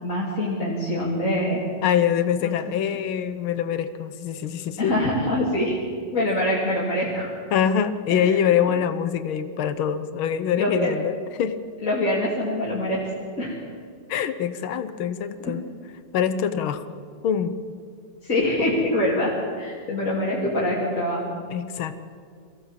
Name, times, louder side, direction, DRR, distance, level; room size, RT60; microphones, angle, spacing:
voice 1, 0.0-1.6 2.4-2.5 4.8-5.8 6.1-7.3 8.1-8.7 10.6-10.9 11.8-13.1 13.4-13.5 15.4-15.5 18.2-21.3, left 1 dB, 40° left, -6 dB, 3.2 m, -24 dB
voice 2, 1.8-4.9 7.5-11.6 14.1-15.6 16.1-17.0 17.2-17.6 21.5-22.0, left 8 dB, 85° left, 11 dB, 1.7 m, -24 dB
23.0 x 15.5 x 7.4 m, 2.2 s
omnidirectional pair, 2.2 m